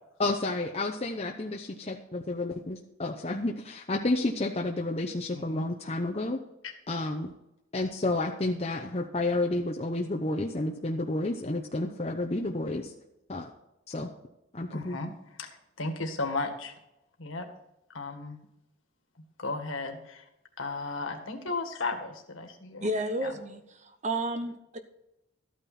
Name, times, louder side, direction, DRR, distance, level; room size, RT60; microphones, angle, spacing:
voice 1, 0.2-6.4 6.9-7.3 7.7-12.9 13.3-13.5 13.9-14.1 14.5-15.0, left 2 dB, 30° left, 2 dB, 0.8 m, -30 dB
voice 2, 5.3-5.6 6.6-6.7 14.7-15.1 15.4-15.5 15.8-16.7 17.2-17.5 17.9-18.4 19.4-20.3 20.6-22.9 23.2-23.3, left 3 dB, 75° left, 5 dB, 1.9 m, -34 dB
voice 3, 22.8-24.8, right 1 dB, 35° right, 8 dB, 0.9 m, -32 dB
13.5 x 9.0 x 4.3 m, 0.87 s
head